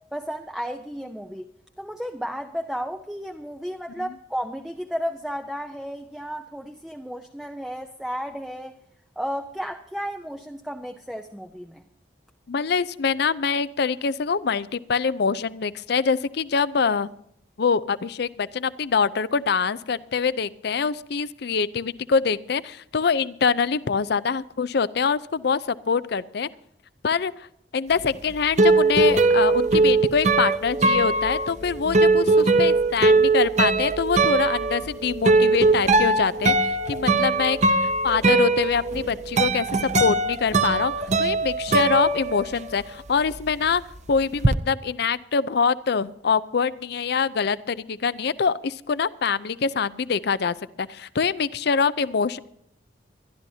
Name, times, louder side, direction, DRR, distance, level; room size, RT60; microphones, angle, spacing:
voice 1, 0.1-1.5 1.8-8.8 9.2-11.8, equal, ahead, 4 dB, 0.6 m, -33 dB
voice 2, 12.5-17.1 17.6-26.5 27.0-27.5 27.7-40.9 41.2-43.8 44.1-52.4, left 5 dB, 60° left, 17 dB, 0.5 m, -24 dB
sound 1, 28.0-42.8 43.1-44.5, right 3 dB, 40° right, 0.8 m, -21 dB
22.5 x 12.0 x 2.8 m, 0.75 s
head